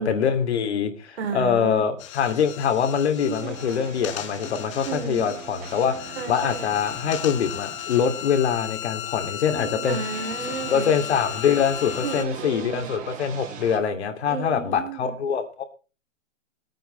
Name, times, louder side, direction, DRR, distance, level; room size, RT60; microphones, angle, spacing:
voice 1, 0.0-10.0 10.7-15.6, left 7 dB, 60° left, 6 dB, 2.6 m, -24 dB
voice 2, 1.2-1.8 3.1-3.6 4.8-5.2 6.1-6.6 9.9-10.9 12.0-12.9 14.3-15.1, right 6 dB, 55° right, 5 dB, 3.3 m, -32 dB
sound 1, 2.0-12.3, left 14 dB, 25° left, 0.7 m, -36 dB
sound 2, 3.4-13.8, right 7 dB, 20° right, 1.9 m, -41 dB
18.0 x 9.3 x 4.3 m, 0.34 s
hypercardioid pair, 155°, 38 cm